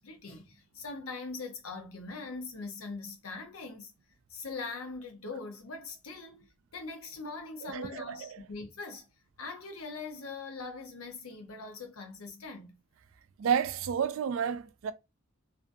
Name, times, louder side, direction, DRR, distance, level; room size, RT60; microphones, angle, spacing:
voice 1, 0.0-3.9 4.3-9.0 9.4-12.8, left 3 dB, 80° left, 0.7 m, -42 dB
voice 2, 7.6-8.4 13.4-14.9, right 7 dB, 65° right, 0.3 m, -31 dB
2.6 x 2.5 x 2.3 m
head